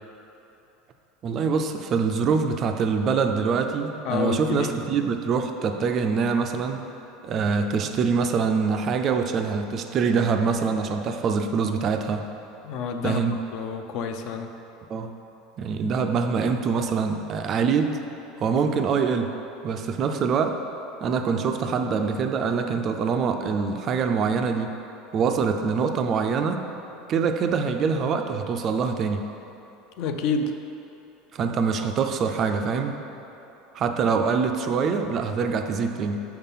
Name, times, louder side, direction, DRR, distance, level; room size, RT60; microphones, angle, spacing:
voice 1, 1.2-6.8 7.2-12.3 13.0-13.4 14.9-15.1 15.6-18.0 18.4-19.3 19.6-20.6 21.0-24.8 25.1-26.6 27.1-29.3 31.3-33.0 33.7-36.2, right 5 dB, 30° right, 6 dB, 0.3 m, -24 dB
voice 2, 4.0-4.7 12.6-13.2 13.5-14.5 30.0-30.5, left 5 dB, 45° left, 6 dB, 0.4 m, -28 dB
5.6 x 4.4 x 5.5 m, 3.0 s
cardioid pair, 165°, 0 cm